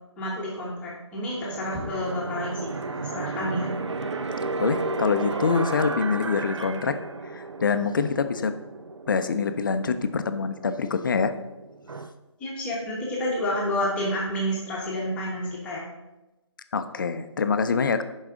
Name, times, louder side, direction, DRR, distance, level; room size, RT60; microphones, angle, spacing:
voice 1, 0.2-3.7 12.4-15.8, equal, 5° left, -5 dB, 1.1 m, -29 dB
sound 1, 1.4-12.1, right 3 dB, 75° right, 0.7 m, -34 dB
voice 2, 4.6-7.0 7.3-8.5 9.1-11.3 16.7-18.0, left 5 dB, 45° left, 10 dB, 0.6 m, -25 dB
10.5 x 4.9 x 3.6 m, 0.99 s
figure-of-eight pair, 160°, 15 cm